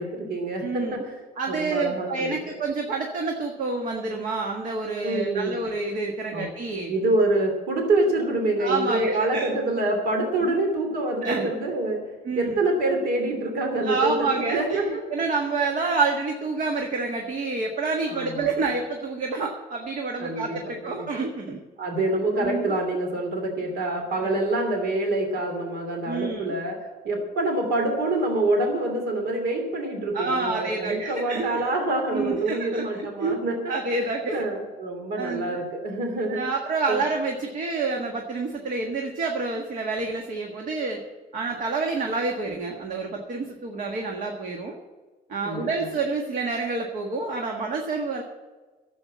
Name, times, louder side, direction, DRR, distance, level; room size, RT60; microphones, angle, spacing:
voice 1, 0.0-1.2 1.5-2.5 5.0-5.6 6.3-6.4 6.9-12.0 12.3-15.0 18.1-18.5 20.2-21.1 21.8-33.6 34.3-36.5 36.9-37.0 45.4-45.9, right 2 dB, 65° right, 3 dB, 2.9 m, -26 dB
voice 2, 0.6-1.0 1.4-6.9 8.6-9.5 10.4-10.5 11.2-11.5 12.2-12.6 13.7-21.6 22.4-22.7 24.2-24.4 26.1-26.4 30.1-31.6 32.1-33.4 33.7-34.4 35.2-35.6 36.3-41.0 41.3-44.8 45.3-48.2, right 3 dB, 50° right, 2 dB, 1.6 m, -28 dB
11.5 x 8.0 x 8.5 m, 1.3 s
cardioid pair, 110°, 17 cm